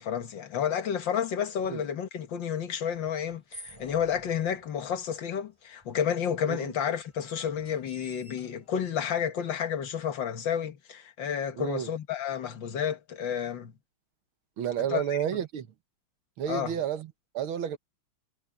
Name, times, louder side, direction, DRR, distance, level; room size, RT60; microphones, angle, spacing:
voice 1, 0.0-13.7 14.9-15.2 16.5-16.8, left 8 dB, 65° left, 2.1 m, -31 dB
sound 1, 2.9-5.0 5.8-5.9 6.1-6.2 6.9-9.0, equal, 15° right, 7.2 m, -50 dB
voice 2, 11.6-11.9 14.6-15.7 16.4-17.8, right 9 dB, 85° right, 2.0 m, -31 dB
omnidirectional pair, 2.2 m